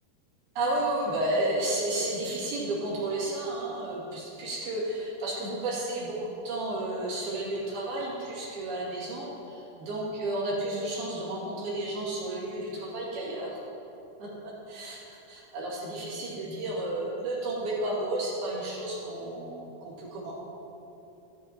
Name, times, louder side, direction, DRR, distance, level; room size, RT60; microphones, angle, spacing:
voice 1, 0.6-13.6 14.2-15.0 15.3-20.3, right 1 dB, 65° right, -8 dB, 4.1 m, -32 dB
12.5 x 10.0 x 2.9 m, 3.0 s
omnidirectional pair, 5.0 m